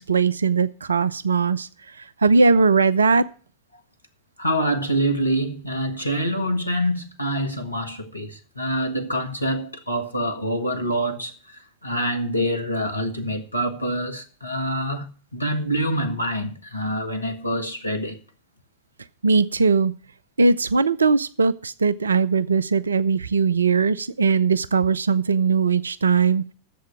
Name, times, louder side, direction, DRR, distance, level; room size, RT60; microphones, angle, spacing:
voice 1, 0.0-1.7 2.2-3.3 19.2-19.9 20.4-26.4, right 4 dB, 75° right, 0.6 m, -19 dB
voice 2, 4.4-15.1 15.3-18.2, equal, 85° left, 1.6 m, -26 dB
11.5 x 7.9 x 7.1 m
figure-of-eight pair, 90°, 0 cm